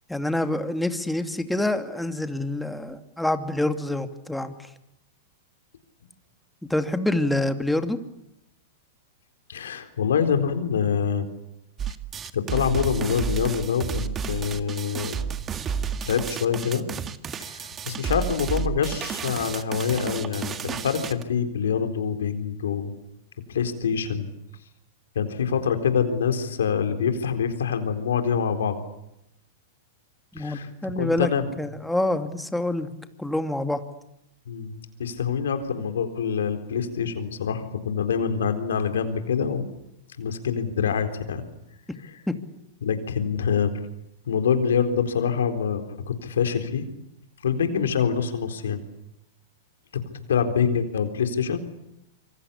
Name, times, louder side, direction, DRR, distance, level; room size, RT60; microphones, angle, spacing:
voice 1, 0.1-4.5 6.7-8.0 30.3-31.3 31.6-32.9 33.2-33.8 42.3-42.4, left 1 dB, 5° left, 8 dB, 2.5 m, -26 dB
voice 2, 9.5-11.3 12.3-15.2 16.1-16.8 17.4-22.9 23.5-24.3 25.2-28.8 30.4-31.5 34.5-39.6 40.2-41.4 42.0-42.2 42.8-43.7 44.3-46.9 47.4-48.8 50.3-51.6, left 7 dB, 75° left, 7 dB, 4.0 m, -25 dB
sound 1, 11.8-21.2, right 7 dB, 25° right, 1.9 m, -31 dB
26.5 x 24.5 x 8.6 m, 0.84 s
hypercardioid pair, 110°, 0 cm